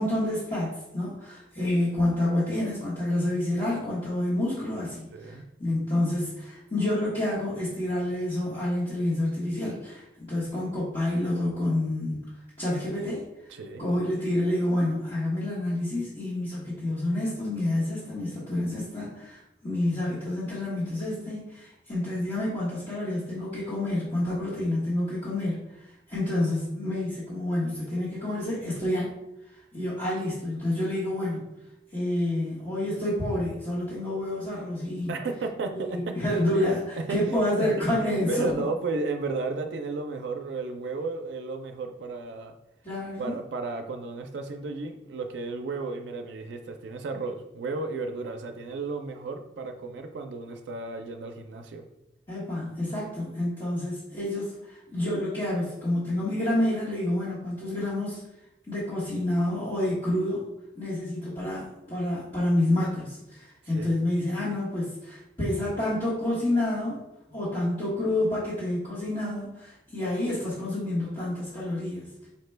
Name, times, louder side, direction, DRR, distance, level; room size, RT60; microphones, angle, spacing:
voice 1, 0.0-12.2 12.6-13.2 13.8-29.1 29.7-31.4 31.9-35.1 35.7-38.6 42.8-43.3 52.3-58.2 58.7-60.4 60.7-67.0 67.3-72.3, left 1 dB, 30° left, -10 dB, 1.0 m, -28 dB
voice 2, 5.1-5.4 13.5-13.8 35.1-36.1 36.5-37.7 38.0-42.6 43.2-51.8 63.7-63.9, right 3 dB, 90° right, 5 dB, 0.4 m, -33 dB
4.3 x 2.1 x 3.2 m, 0.89 s
head